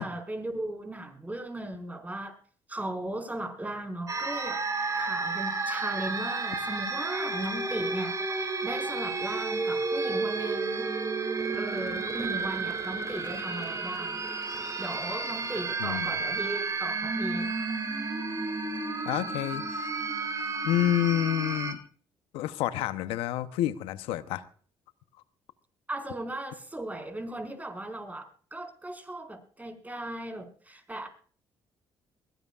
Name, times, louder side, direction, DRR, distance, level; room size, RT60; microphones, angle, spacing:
voice 1, 0.0-2.4 2.7-4.6 5.0-11.3 11.5-14.2 14.8-17.5 25.9-31.1, right 1 dB, 15° right, 5 dB, 5.0 m, -37 dB
sound 1, 4.1-21.7, right 3 dB, 35° right, 2.8 m, -32 dB
voice 2, 15.8-16.1 19.0-19.9 20.6-21.8 22.3-24.4, left 13 dB, 85° left, 12 dB, 0.8 m, -29 dB
22.5 x 16.0 x 2.4 m, 0.43 s
supercardioid pair, 70°, 9 cm